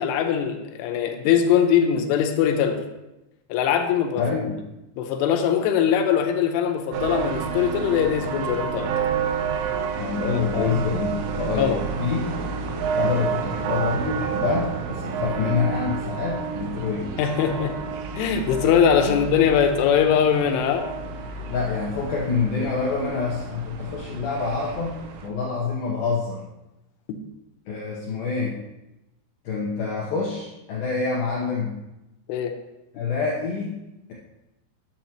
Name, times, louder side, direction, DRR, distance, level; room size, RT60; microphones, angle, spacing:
voice 1, 0.0-2.8 3.5-4.2 5.0-8.9 10.5-10.8 11.5-11.8 17.2-17.7 18.2-20.9 27.1-27.2 32.3-32.5, left 8 dB, 90° left, 5 dB, 3.3 m, -21 dB
voice 2, 4.2-4.6 10.0-11.7 12.0-12.3 12.9-17.1 19.1-19.2 21.5-25.0 25.2-26.4 27.7-28.6 29.4-31.7 32.9-33.8, left 5 dB, 70° left, -4 dB, 2.2 m, -26 dB
sound 1, 6.9-25.3, right 6 dB, 85° right, 3.4 m, -30 dB
10.5 x 7.9 x 2.9 m, 0.95 s
omnidirectional pair, 5.5 m